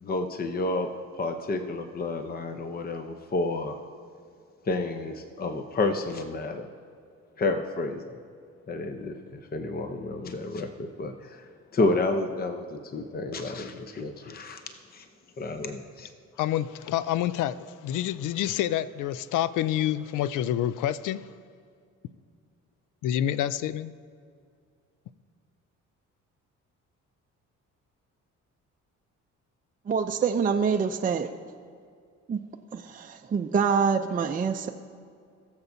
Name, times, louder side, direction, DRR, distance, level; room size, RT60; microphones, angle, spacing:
voice 1, 0.0-3.8 4.7-6.7 7.4-8.2 8.7-14.6 14.9-15.0 15.4-16.1, left 2 dB, 30° left, 7 dB, 0.7 m, -30 dB
voice 2, 16.4-21.2 23.0-23.9, left 11 dB, 85° left, 16 dB, 0.5 m, -28 dB
voice 3, 29.9-31.3 32.3-32.4 32.7-34.7, right 6 dB, 30° right, 4 dB, 0.5 m, -26 dB
20.0 x 7.0 x 2.7 m, 2.3 s
cardioid pair, 90°, 30 cm